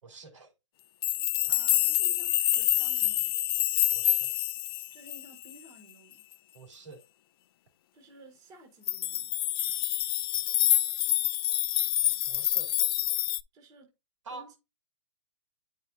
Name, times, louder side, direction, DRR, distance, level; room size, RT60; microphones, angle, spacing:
voice 1, 0.0-0.5 3.9-4.3 6.5-7.0 12.3-12.7 14.2-14.5, right 3 dB, 85° right, 3.2 m, -46 dB
sound 1, 1.0-5.5 8.9-13.4, left 13 dB, 50° left, 0.4 m, -27 dB
voice 2, 1.5-3.3 4.9-6.2 7.9-9.4 13.5-13.9 14.3-14.6, right 1 dB, 25° right, 1.4 m, -53 dB
9.1 x 4.7 x 2.7 m
hypercardioid pair, 150°, 16 cm